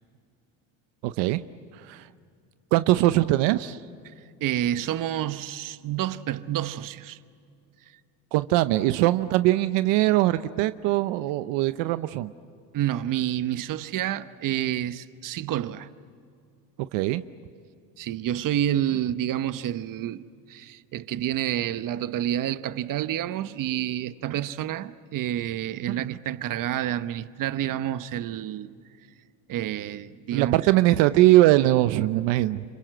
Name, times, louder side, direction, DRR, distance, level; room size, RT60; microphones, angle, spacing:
voice 1, 1.0-1.4 1.7-2.1 2.7-3.8 8.3-12.3 16.9-17.2 25.9-26.1 30.3-32.6, right 16 dB, 80° right, 0.8 m, -21 dB
voice 2, 4.4-7.2 12.7-15.9 18.0-20.2 20.5-28.7 29.5-30.6, right 11 dB, 50° right, 1.1 m, -29 dB
29.0 x 26.0 x 7.8 m
supercardioid pair, 110°, 41 cm